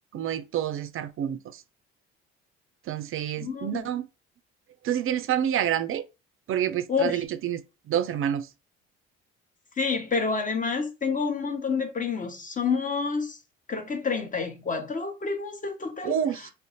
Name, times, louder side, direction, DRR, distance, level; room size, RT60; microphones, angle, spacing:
voice 1, 0.1-1.6 2.9-4.1 4.8-6.0 6.5-8.5 16.0-16.5, right 10 dB, 45° right, 0.5 m, -28 dB
voice 2, 3.4-3.8 6.9-7.2 9.8-13.4 13.7-16.2, left 5 dB, 25° left, 0.8 m, -28 dB
2.6 x 2.0 x 2.9 m
supercardioid pair, 65°, 30 cm